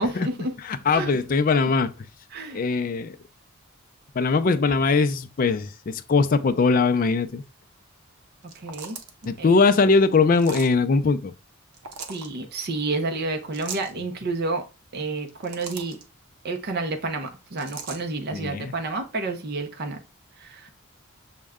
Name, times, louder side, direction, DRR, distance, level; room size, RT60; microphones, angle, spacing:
voice 1, 0.0-0.5 0.9-1.1 2.3-2.6 8.5-9.0 9.4-9.6 12.1-14.6 14.9-16.0 16.4-20.0 20.4-20.7, right 3 dB, 45° right, 0.6 m, -30 dB
voice 2, 0.7-1.9 2.5-3.2 4.1-7.4 9.3-11.3 18.3-18.7, left 4 dB, 40° left, 0.3 m, -21 dB
sound 1, 8.4-9.3 10.4-10.8 11.7-12.3 13.5-13.9 15.2-16.0 17.6-18.0, right 5 dB, 85° right, 0.7 m, -38 dB
6.2 x 2.2 x 3.5 m
head